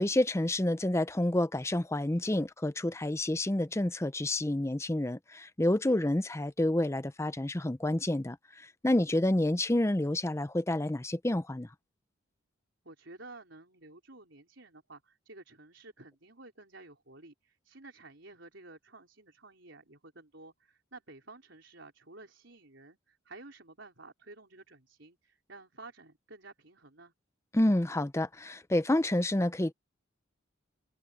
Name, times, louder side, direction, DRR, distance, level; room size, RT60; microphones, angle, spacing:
voice 1, 0.0-8.4 8.8-11.7 27.5-29.7, left 1 dB, 15° left, 0.6 m, -29 dB
voice 2, 5.8-6.2 12.8-27.1, right 2 dB, 65° right, 4.6 m, -52 dB
head